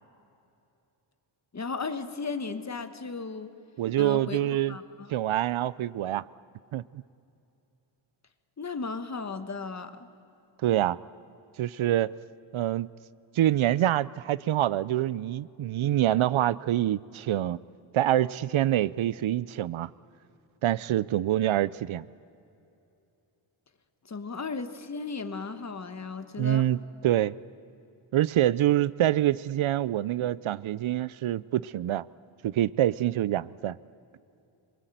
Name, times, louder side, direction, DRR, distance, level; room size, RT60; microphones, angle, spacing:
voice 1, 1.5-3.5 4.0-5.2 8.6-10.1 24.0-26.7, left 4 dB, 35° left, 10 dB, 1.4 m, -35 dB
voice 2, 3.8-4.8 5.1-6.2 6.7-7.0 10.6-11.0 11.6-12.1 12.5-12.9 13.3-17.6 17.9-19.9 20.6-22.0 26.4-27.3 28.1-32.0 32.4-33.8, right 13 dB, 75° right, 19 dB, 0.6 m, -26 dB
26.5 x 23.0 x 9.2 m, 2.7 s
wide cardioid pair, 170°, 49 cm